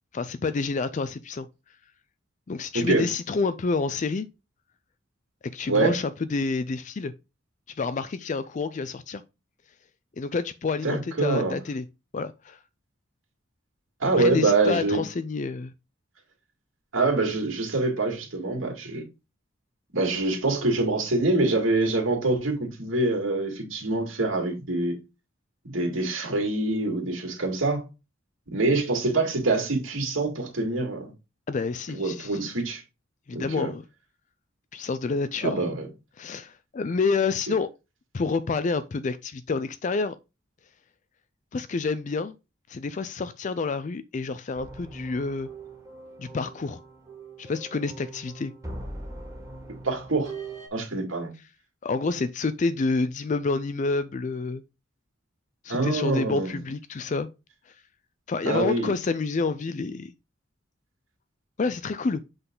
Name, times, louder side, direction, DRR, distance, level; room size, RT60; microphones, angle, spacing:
voice 1, 0.1-1.5 2.5-4.3 5.5-7.1 7.8-9.2 10.2-11.8 12.1-12.6 14.2-15.7 31.5-32.4 33.3-33.8 34.7-35.7 36.2-37.7 38.1-40.2 41.5-42.3 42.7-45.5 46.2-46.8 47.4-48.5 51.8-54.6 55.6-57.3 58.3-60.1 61.6-62.2, left 4 dB, 40° left, 0.4 m, -28 dB
voice 2, 2.7-3.1 5.7-6.0 10.8-11.6 14.0-15.0 16.9-19.0 19.9-25.0 25.6-27.8 28.5-31.1 31.9-32.8 33.3-33.7 35.4-35.9 37.5-37.6 49.8-50.3 50.7-51.3 55.7-56.6 58.5-58.9, right 2 dB, 85° right, 2.4 m, -25 dB
sound 1, 44.6-50.7, right 2 dB, 15° right, 2.1 m, -41 dB
7.9 x 4.0 x 3.7 m
head